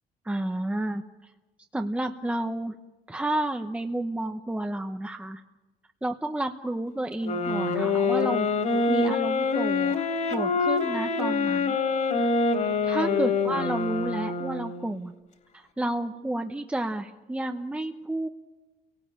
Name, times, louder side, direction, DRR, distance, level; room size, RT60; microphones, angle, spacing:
voice 1, 0.3-1.3 1.7-2.8 3.1-5.4 6.0-8.5 8.9-10.0 10.3-11.8 12.8-15.1 15.5-18.3, right 1 dB, 5° right, 5 dB, 1.0 m, -31 dB
sound 1, 7.2-14.9, left 4 dB, 45° left, 3.4 m, -25 dB
29.5 x 18.0 x 8.9 m, 1.2 s
cardioid pair, 110°, 17 cm